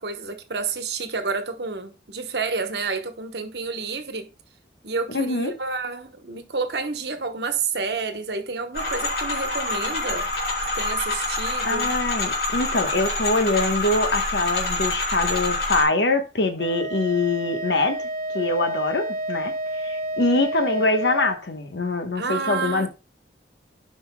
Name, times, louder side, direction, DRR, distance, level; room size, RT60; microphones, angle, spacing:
voice 1, 0.0-4.3 4.8-10.3 10.7-11.9 22.1-22.9, right 4 dB, 75° right, 1.1 m, -29 dB
voice 2, 5.1-5.5 11.6-18.1 18.3-22.9, left 2 dB, 85° left, 1.2 m, -24 dB
sound 1, 8.7-15.8, left 2 dB, 65° left, 3.0 m, -26 dB
Wind instrument woodwind instrument, 16.6-21.4, right 1 dB, 45° right, 1.5 m, -30 dB
13.0 x 5.4 x 2.2 m
head